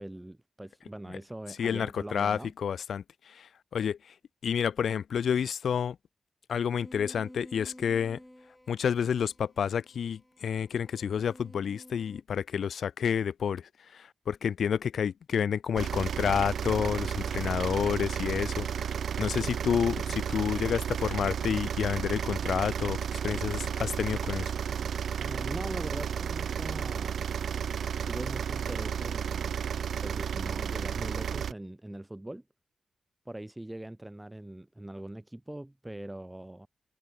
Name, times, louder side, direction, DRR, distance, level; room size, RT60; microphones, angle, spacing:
voice 1, 0.0-2.5 19.4-19.5 25.2-27.2 28.0-29.6 30.0-32.4 33.3-36.7, right 1 dB, 10° right, 1.9 m, -41 dB
voice 2, 1.6-3.0 3.3-4.0 4.4-6.0 6.5-8.2 8.7-13.6 13.9-18.7 19.2-24.5, left 7 dB, 80° left, 2.0 m, -29 dB
sound 1, 6.8-12.2, left 1 dB, 5° left, 7.8 m, -52 dB
sound 2, 15.8-31.5, right 8 dB, 90° right, 3.2 m, -32 dB
open air
wide cardioid pair, 170°, 0 cm